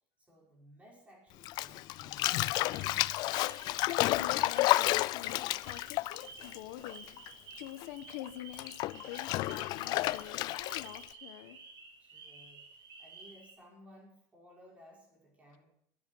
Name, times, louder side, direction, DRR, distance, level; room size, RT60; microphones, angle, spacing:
voice 1, 0.2-3.0 12.0-15.7, equal, 15° right, -2 dB, 5.5 m, -59 dB
Bathtub (filling or washing), 1.4-7.3 7.6-11.1, left 18 dB, 45° left, 0.4 m, -31 dB
sound 1, 2.6-5.0 5.2-13.5, right 4 dB, 50° right, 4.7 m, -53 dB
voice 2, 4.0-7.1 7.5-11.6, left 13 dB, 70° left, 10 dB, 1.4 m, -46 dB
12.5 x 10.0 x 6.6 m, 0.68 s
cardioid pair, 150°, 10 cm